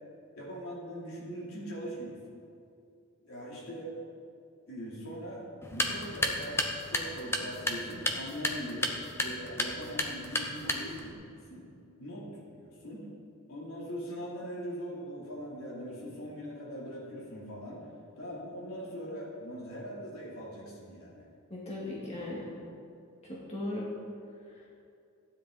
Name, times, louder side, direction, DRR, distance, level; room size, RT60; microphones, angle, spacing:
voice 1, 0.3-2.2 3.2-3.9 4.7-5.4 5.7-11.7 12.0-13.1 13.5-17.9 18.2-21.3, equal, 75° left, -5 dB, 3.6 m, -41 dB
sound 1, 5.6-11.1, left 1 dB, 10° left, 0.8 m, -33 dB
voice 2, 21.5-22.5 23.2-23.9 24.5-24.7, left 1 dB, 30° left, -6 dB, 2.2 m, -38 dB
15.5 x 9.9 x 4.2 m, 2.4 s
head